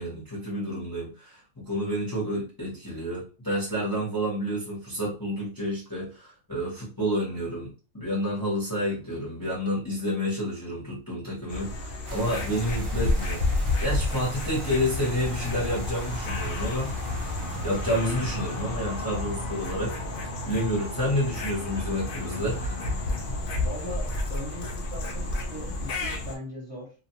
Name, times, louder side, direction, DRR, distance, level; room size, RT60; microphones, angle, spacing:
voice 1, 0.0-13.4 13.8-16.9 17.6-20.0 20.4-22.8, equal, 20° left, -5 dB, 0.6 m, -29 dB
sound 1, 11.5-26.4, left 2 dB, 70° left, 0.5 m, -31 dB
sound 2, 12.0-18.6, right 1 dB, 45° right, 0.4 m, -39 dB
voice 2, 23.6-26.9, left 1 dB, 30° right, -5 dB, 0.8 m, -39 dB
2.4 x 2.1 x 2.8 m, 0.36 s
omnidirectional pair, 1.5 m